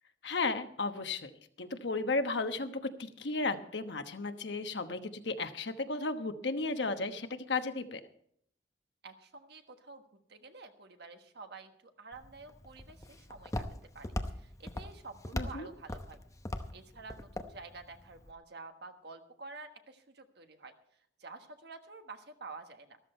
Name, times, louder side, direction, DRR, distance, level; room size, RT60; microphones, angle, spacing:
voice 1, 0.2-1.3 1.6-8.0 15.3-15.7, left 3 dB, 70° left, 8 dB, 1.1 m, -34 dB
voice 2, 9.0-10.0 10.3-13.6 13.9-16.2 16.7-20.7 21.2-23.0, right 3 dB, 65° right, 6 dB, 1.4 m, -49 dB
Walk footsteps, 12.1-18.3, left 1 dB, 20° left, 0.8 m, -41 dB
13.5 x 13.5 x 4.4 m, 0.66 s
head